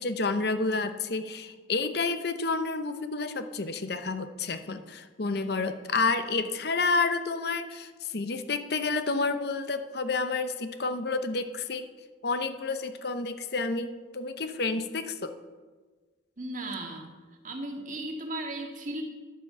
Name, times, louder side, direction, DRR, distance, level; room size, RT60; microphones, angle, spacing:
voice 1, 0.0-11.9 12.2-15.3, left 3 dB, 55° left, 9 dB, 0.8 m, -30 dB
voice 2, 16.4-17.1 17.4-19.0, right 2 dB, 40° right, 2 dB, 1.9 m, -36 dB
11.5 x 8.9 x 6.8 m, 1.3 s
head